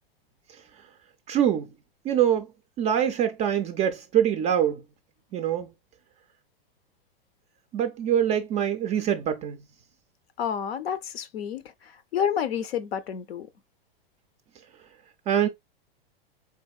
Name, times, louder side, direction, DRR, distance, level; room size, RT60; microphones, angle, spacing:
voice 1, 1.3-1.7 2.0-2.5 2.8-4.8 5.3-5.7 7.7-9.6 15.3-15.5, right 9 dB, 25° right, 0.3 m, -24 dB
voice 2, 10.4-13.5, left 8 dB, 75° left, 0.7 m, -30 dB
3.9 x 3.4 x 2.2 m
hypercardioid pair, 115°, 31 cm